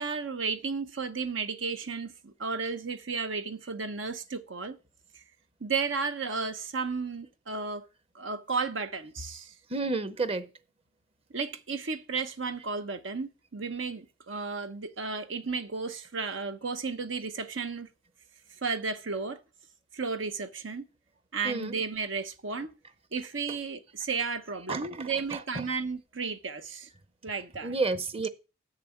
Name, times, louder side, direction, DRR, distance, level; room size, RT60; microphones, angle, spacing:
voice 1, 0.0-4.8 5.1-5.2 5.6-7.8 8.1-9.5 11.3-17.9 18.6-19.4 19.9-20.9 21.3-22.7 23.1-26.9 27.2-27.7, right 4 dB, 85° right, 1.0 m, -33 dB
voice 2, 9.7-10.5 21.4-21.8 23.5-23.6 24.7-25.6 27.6-28.3, right 3 dB, 30° right, 0.8 m, -31 dB
7.7 x 6.9 x 7.1 m
head